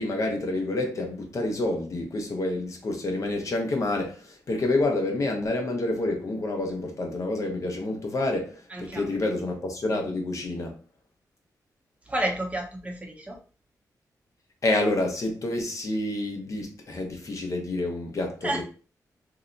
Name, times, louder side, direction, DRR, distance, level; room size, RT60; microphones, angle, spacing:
voice 1, 0.0-10.8 14.6-18.6, left 2 dB, 50° left, 0.8 m, -28 dB
voice 2, 8.7-9.2 12.1-13.4 18.4-18.6, right 1 dB, 20° right, 0.7 m, -30 dB
2.7 x 2.2 x 3.8 m
wide cardioid pair, 105°, 7 cm